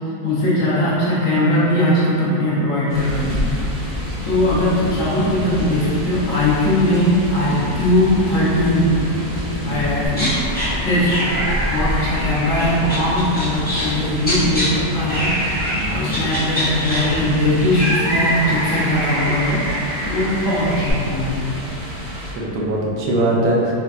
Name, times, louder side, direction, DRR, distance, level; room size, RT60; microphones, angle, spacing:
voice 1, 0.2-3.5 4.2-8.9 9.6-10.3 10.8-11.4 11.7-19.6 20.0-21.5, left 1 dB, 60° left, -9 dB, 1.1 m, -19 dB
sound 1, 2.9-22.3, equal, 40° right, 1.0 m, -29 dB
sound 2, 10.1-10.7 11.1-13.9 14.2-14.7 15.1-15.8 16.1-20.9, equal, 10° left, 0.7 m, -25 dB
voice 2, 22.4-23.7, right 1 dB, 85° right, -4 dB, 1.2 m, -22 dB
4.1 x 2.3 x 2.4 m, 2.8 s
omnidirectional pair, 1.8 m